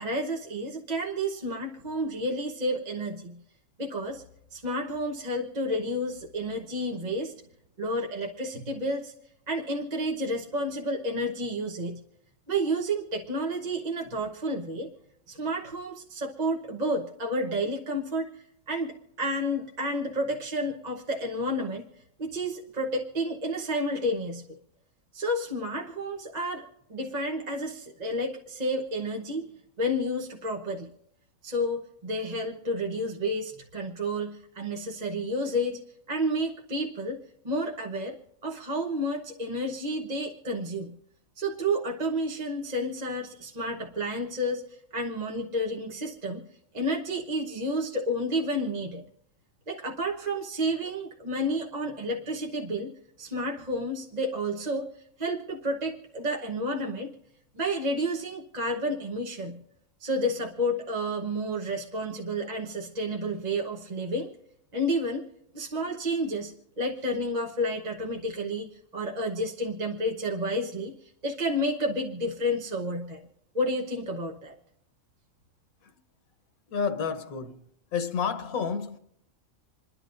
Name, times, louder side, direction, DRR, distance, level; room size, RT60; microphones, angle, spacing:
voice 1, 0.0-3.4 3.8-4.2 4.5-7.3 7.8-9.1 9.5-12.0 12.5-14.9 15.3-21.9 22.2-24.4 25.1-29.5 29.8-30.9 31.4-35.8 36.1-40.9 41.4-46.4 46.7-49.0 49.7-52.9 53.2-57.2 57.5-59.6 60.0-64.3 64.7-65.2 65.5-73.2 73.5-74.5, equal, 35° right, 1.1 m, -30 dB
voice 2, 76.7-77.6 77.9-79.0, left 6 dB, 90° left, 1.4 m, -30 dB
28.0 x 11.0 x 2.6 m
omnidirectional pair, 1.4 m